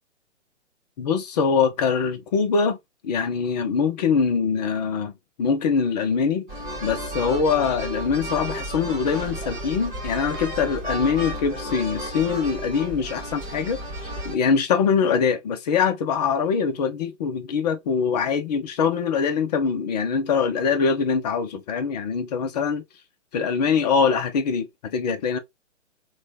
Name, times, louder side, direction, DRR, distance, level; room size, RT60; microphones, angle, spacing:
voice 1, 1.0-2.8 3.0-5.1 5.4-6.5 6.8-22.8 23.3-25.4, left 6 dB, 35° left, 0.7 m, -23 dB
sound 1, 6.5-14.4, right 1 dB, 20° right, 1.1 m, -33 dB
3.1 x 2.3 x 3.8 m
figure-of-eight pair, 135°, 37 cm